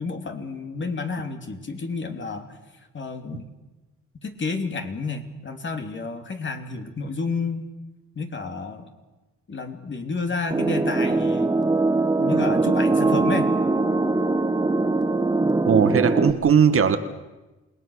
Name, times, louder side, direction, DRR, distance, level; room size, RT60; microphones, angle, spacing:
voice 1, 0.0-2.6 2.9-3.5 4.2-7.7 8.2-8.9 9.5-11.5 12.2-13.5, left 4 dB, 40° left, 5 dB, 3.0 m, -30 dB
sound 1, 10.5-16.3, right 3 dB, 15° right, 1.2 m, -22 dB
voice 2, 15.7-17.0, right 7 dB, 45° right, 9 dB, 1.7 m, -18 dB
28.5 x 19.0 x 6.5 m, 1.1 s
cardioid pair, 90°, 30 cm